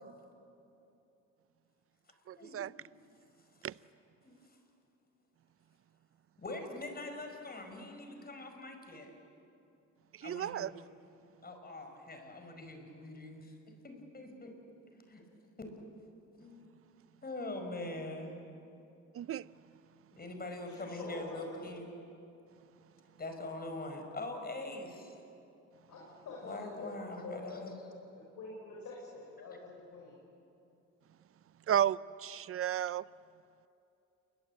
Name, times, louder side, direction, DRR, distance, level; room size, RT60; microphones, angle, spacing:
voice 1, 2.3-2.7 3.6-3.7 10.2-10.7 19.1-19.5 31.7-33.0, right 10 dB, 50° right, 0.6 m, -33 dB
voice 2, 4.2-4.6 6.4-9.1 10.2-10.7 11.4-13.5 13.8-14.5 14.9-15.2 15.6-15.7 16.4-16.8 17.2-18.3 20.1-21.9 23.2-25.2 26.4-27.7, left 2 dB, 30° left, 5.4 m, -43 dB
voice 3, 20.6-21.6 25.9-27.7 28.2-30.2, left 3 dB, 70° left, 6.0 m, -46 dB
28.5 x 21.5 x 8.3 m
cardioid pair, 90°, 30 cm